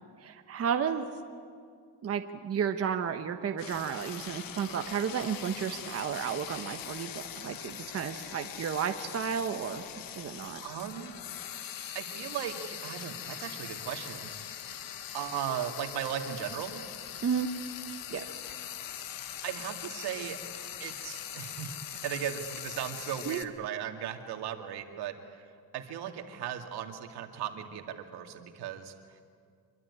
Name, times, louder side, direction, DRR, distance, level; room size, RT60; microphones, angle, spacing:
voice 1, 0.2-1.1 2.0-9.8 10.2-10.6 17.2-17.5 18.1-18.3 23.2-23.4, right 7 dB, 40° right, 6 dB, 1.1 m, -32 dB
Frying (food), 3.6-23.4, left 10 dB, 60° left, 1.4 m, -42 dB
voice 2, 10.6-11.2 11.9-14.3 15.1-16.8 19.4-20.4 20.8-25.1 25.7-28.9, right 9 dB, 80° right, 5 dB, 2.4 m, -37 dB
25.0 x 23.5 x 9.8 m, 2.2 s
cardioid pair, 160°, 39 cm